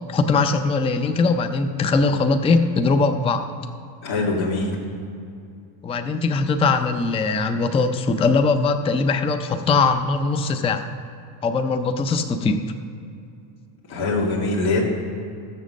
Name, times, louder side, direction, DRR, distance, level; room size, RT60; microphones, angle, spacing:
voice 1, 0.1-3.5 5.8-10.9 11.4-12.6, left 4 dB, 15° left, 8 dB, 0.4 m, -21 dB
voice 2, 4.0-4.8 13.9-14.8, left 2 dB, 55° left, -3 dB, 2.3 m, -23 dB
13.5 x 7.3 x 6.4 m, 2.5 s
cardioid pair, 130°, 47 cm